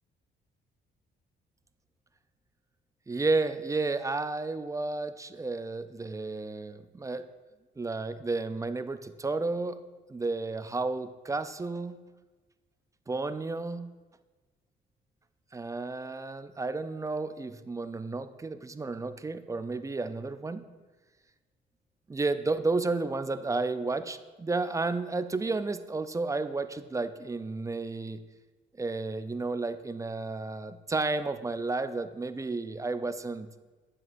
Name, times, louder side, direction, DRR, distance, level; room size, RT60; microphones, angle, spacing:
voice 1, 3.1-7.3 7.8-9.8 10.1-12.0 13.1-13.9 15.5-20.6 22.1-28.2 28.8-33.5, right 3 dB, 15° right, 11 dB, 0.3 m, -32 dB
9.6 x 7.5 x 2.5 m, 1.3 s
cardioid pair, 90°, 20 cm